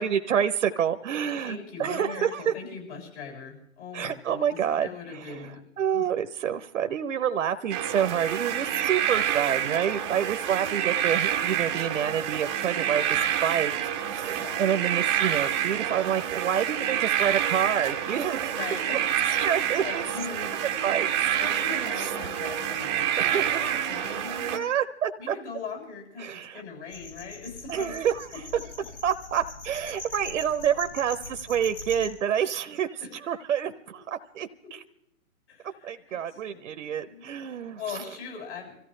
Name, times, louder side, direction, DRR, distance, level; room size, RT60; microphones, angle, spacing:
voice 1, 0.0-2.5 3.9-5.5 5.8-18.7 19.3-20.0 20.8-21.1 21.5-22.2 23.2-24.2 24.5-25.3 26.2-26.6 27.7-28.4 29.0-33.0 33.3-34.8 35.8-37.8, right 9 dB, 65° right, 10 dB, 0.9 m, -28 dB
voice 2, 1.4-5.6 5.9-6.1 8.5-8.6 14.3-14.7 18.5-19.2 19.6-20.6 21.3-24.7 25.2-26.3 26.5-27.9 28.3-28.4 29.9-30.0 33.0-33.3 34.6-34.7 35.5-38.8, left 5 dB, 50° left, -2 dB, 7.4 m, -41 dB
sound 1, 7.7-24.6, right 10 dB, 15° right, 0.7 m, -28 dB
sound 2, 26.9-32.1, left 3 dB, 70° left, 5.5 m, -42 dB
25.5 x 14.5 x 3.2 m, 0.80 s
hypercardioid pair, 150°, 42 cm